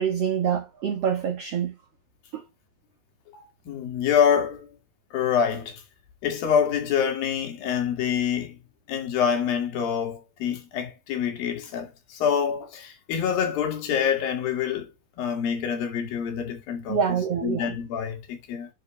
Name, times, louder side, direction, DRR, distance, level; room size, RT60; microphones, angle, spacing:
voice 1, 0.0-1.7 2.3-2.4 16.9-17.8, right 7 dB, 55° right, 1.9 m, -26 dB
voice 2, 3.7-4.7 5.1-5.8 6.2-8.6 8.9-14.9 15.2-17.0 17.4-18.7, left 8 dB, 70° left, 3.8 m, -26 dB
11.0 x 4.6 x 3.3 m
omnidirectional pair, 4.3 m